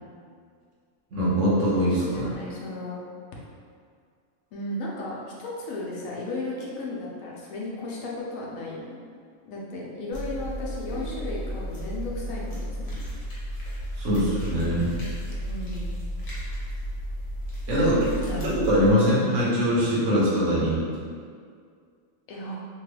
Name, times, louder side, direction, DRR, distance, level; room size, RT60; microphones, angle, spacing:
voice 1, 1.1-2.3 14.0-15.0 17.7-18.0 18.4-20.8, equal, 65° right, -6 dB, 1.1 m, -22 dB
voice 2, 1.9-3.0 4.5-9.0 9.4-13.0 15.4-15.9 17.7-18.5 22.3-22.6, left 2 dB, 80° left, -4 dB, 1.1 m, -35 dB
sound 1, 10.1-18.9, equal, 55° left, 1.2 m, -33 dB
3.1 x 2.2 x 3.2 m, 2.1 s
omnidirectional pair, 1.4 m